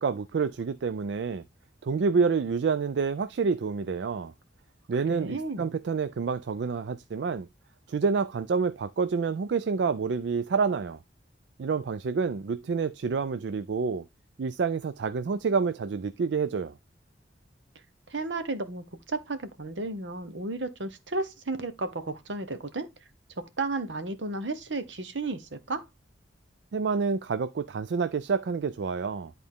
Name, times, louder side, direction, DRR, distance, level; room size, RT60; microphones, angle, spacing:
voice 1, 0.0-1.4 1.8-4.3 4.9-7.5 7.9-11.0 11.6-14.1 14.4-16.7 26.7-29.3, right 5 dB, 65° right, 0.4 m, -28 dB
voice 2, 5.1-5.7 18.1-22.9 23.6-25.8, right 3 dB, 80° right, 1.2 m, -33 dB
10.5 x 4.0 x 3.5 m
head